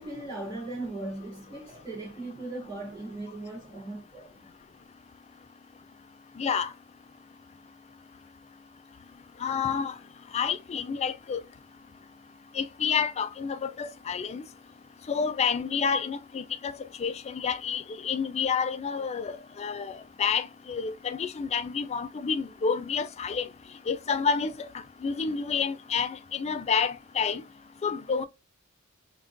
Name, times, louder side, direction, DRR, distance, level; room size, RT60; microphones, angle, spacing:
voice 1, 0.0-4.5, right 2 dB, 20° right, 2.6 m, -38 dB
voice 2, 6.4-6.7 9.4-10.0 10.3-11.4 12.5-14.4 15.1-23.5 23.9-24.7 25.0-27.4 27.8-28.2, left 6 dB, 30° left, 0.3 m, -29 dB
5.7 x 2.3 x 2.5 m
head